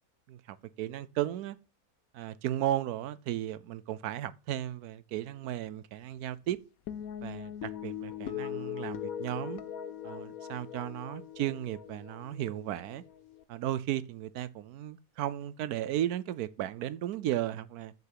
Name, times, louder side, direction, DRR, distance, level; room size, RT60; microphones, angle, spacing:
voice 1, 0.3-1.6 2.1-6.6 7.2-9.6 10.0-13.0 13.5-17.9, right 12 dB, 85° right, 1.1 m, -35 dB
sound 1, 6.9-13.4, left 10 dB, 75° left, 1.1 m, -41 dB
6.9 x 6.7 x 7.4 m
omnidirectional pair, 1.6 m